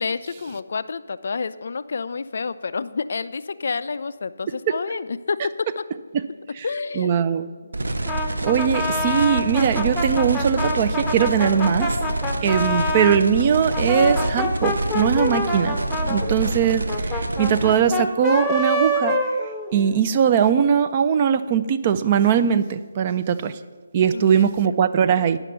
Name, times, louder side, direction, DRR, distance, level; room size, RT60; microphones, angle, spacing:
voice 1, 0.0-5.4 5.8-5.9 6.6-7.2 24.1-24.8, left 4 dB, 50° left, 14 dB, 0.3 m, -29 dB
voice 2, 7.0-7.5 8.4-12.0 12.4-15.8 16.1-19.2 19.7-23.6 23.9-25.4, right 8 dB, 25° right, 10 dB, 0.3 m, -20 dB
sound 1, 7.7-17.7, right 2 dB, 65° right, 0.8 m, -27 dB
Brass instrument, 8.1-13.2 13.7-20.0, left 1 dB, 5° left, 0.7 m, -26 dB
9.9 x 5.8 x 6.7 m, 1.5 s
figure-of-eight pair, 150°, 0 cm